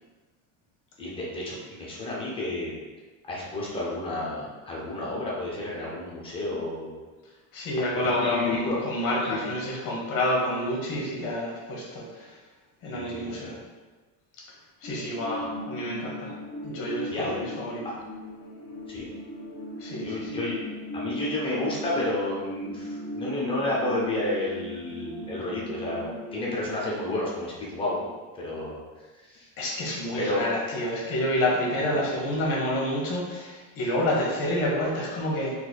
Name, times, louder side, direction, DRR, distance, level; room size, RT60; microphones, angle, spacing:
voice 1, 1.0-2.8 3.3-6.9 7.8-8.8 9.2-9.5 12.9-13.5 17.1-17.4 18.9-19.1 20.0-28.1 28.3-28.8 29.2-29.5 30.2-30.4 31.8-31.9, left 2 dB, 15° left, -5 dB, 0.3 m, -31 dB
voice 2, 7.5-12.3 12.8-13.6 14.8-16.3 16.6-17.8 19.8-20.4 29.6-35.5, left 1 dB, 45° left, -3 dB, 1.0 m, -28 dB
sound 1, 14.8-26.7, equal, 70° left, 1.3 m, -38 dB
3.9 x 3.1 x 2.2 m, 1.3 s
cardioid pair, 170°, 44 cm